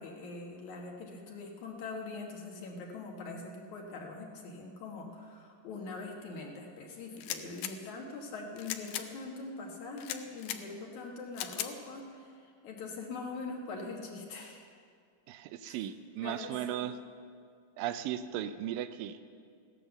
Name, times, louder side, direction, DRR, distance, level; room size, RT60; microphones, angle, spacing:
voice 1, 0.0-14.7 15.7-15.8 16.2-16.8, left 3 dB, 65° left, 0 dB, 2.7 m, -43 dB
sound 1, 7.2-7.7 8.6-9.1 10.0-10.6 11.4-11.7, left 12 dB, 80° left, 2.3 m, -38 dB
voice 2, 15.3-17.0 17.8-19.2, right 11 dB, 85° right, 11 dB, 2.4 m, -36 dB
16.5 x 10.0 x 7.0 m, 2.2 s
omnidirectional pair, 3.9 m